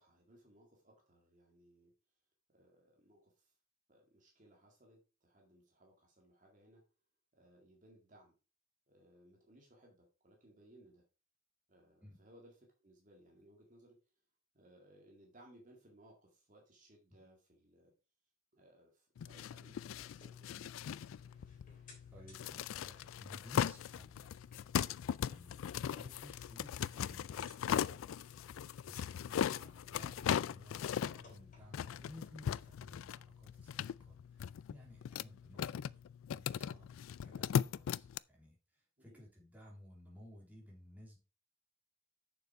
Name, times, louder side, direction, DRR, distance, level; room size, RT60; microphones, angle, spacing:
voice 1, 0.0-1.9 2.5-3.5 3.9-6.8 7.3-8.3 8.9-11.0 11.7-14.0 14.5-17.9 18.5-20.7 39.0-39.2, right 1 dB, 40° right, 0 dB, 2.0 m, -64 dB
sound 1, 19.2-38.2, left 8 dB, 85° left, 0.3 m, -39 dB
sound 2, 19.9-32.0, left 3 dB, 40° left, 3.4 m, -65 dB
voice 2, 22.1-24.4 25.2-35.7 36.3-36.9 37.2-41.2, left 1 dB, 10° right, -3 dB, 3.0 m, -57 dB
7.0 x 6.8 x 4.7 m, 0.33 s
head